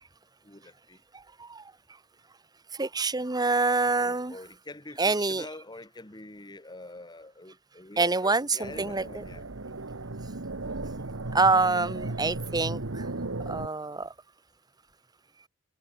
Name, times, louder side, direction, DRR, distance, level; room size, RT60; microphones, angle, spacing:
voice 1, 0.4-1.0 4.0-9.4, left 2 dB, 20° left, 2.7 m, -45 dB
voice 2, 2.8-4.3 5.0-5.5 8.0-9.2 11.3-13.0 13.5-14.1, right 3 dB, 20° right, 1.1 m, -26 dB
sound 1, 8.6-13.7, right 2 dB, 80° right, 1.5 m, -36 dB
head